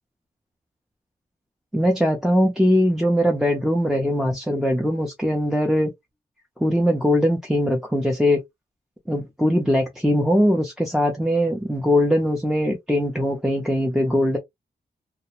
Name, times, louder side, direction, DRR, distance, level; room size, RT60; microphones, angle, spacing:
voice 1, 1.7-5.9 6.6-8.4 9.1-14.4, equal, 5° right, 0.4 m, -21 dB
2.3 x 2.0 x 2.8 m
wide cardioid pair, 165°, 17 cm